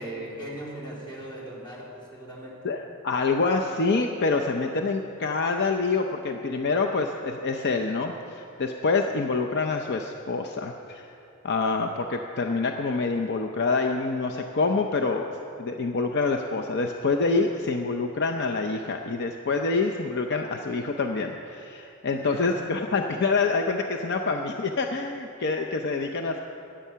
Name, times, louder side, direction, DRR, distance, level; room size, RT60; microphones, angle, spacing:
voice 1, 0.0-2.8 22.1-22.6, right 1 dB, 20° left, -4 dB, 2.9 m, -39 dB
voice 2, 2.6-11.2 11.4-15.3 15.6-26.4, left 3 dB, 55° left, 3 dB, 0.6 m, -26 dB
15.5 x 10.0 x 5.7 m, 2.7 s
head